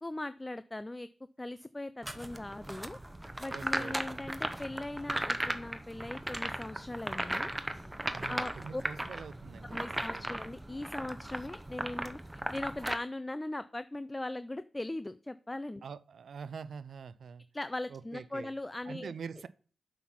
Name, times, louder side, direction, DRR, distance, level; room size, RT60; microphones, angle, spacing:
voice 1, 0.0-1.1 1.4-3.0 3.4-7.5 8.3-8.8 9.6-15.8 17.5-19.1, left 2 dB, 25° left, 0.3 m, -39 dB
sound 1, 2.0-12.9, right 1 dB, 15° right, 0.8 m, -37 dB
voice 2, 3.5-4.2 8.1-10.5 15.8-17.4 17.9-18.5 18.9-19.5, right 6 dB, 75° right, 0.3 m, -45 dB
8.2 x 4.0 x 5.8 m
cardioid pair, 45°, 0 cm